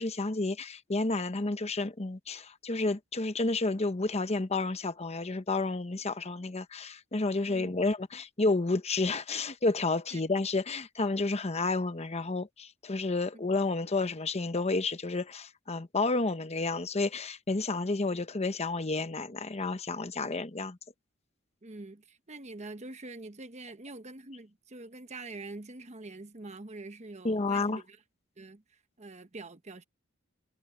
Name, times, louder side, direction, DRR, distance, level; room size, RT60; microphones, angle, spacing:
voice 1, 0.0-20.8 27.2-27.8, left 3 dB, 30° left, 0.9 m, -30 dB
voice 2, 21.6-28.0 28.4-29.8, right 2 dB, 35° right, 1.2 m, -45 dB
head